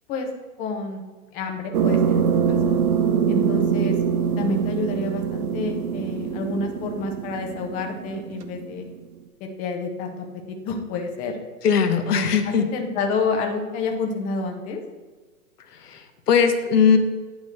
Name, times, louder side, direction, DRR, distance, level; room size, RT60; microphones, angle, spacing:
voice 1, 0.6-1.0 1.3-2.8 3.3-4.0 4.4-8.8 9.4-11.3 12.1-14.8, left 3 dB, 20° left, 3 dB, 0.6 m, -29 dB
sound 1, 1.7-8.9, right 7 dB, 70° right, 0.8 m, -24 dB
voice 2, 11.6-12.7 15.8-17.0, left 6 dB, 85° left, 7 dB, 1.0 m, -19 dB
8.8 x 3.0 x 6.4 m, 1.3 s
hypercardioid pair, 125°, 45 cm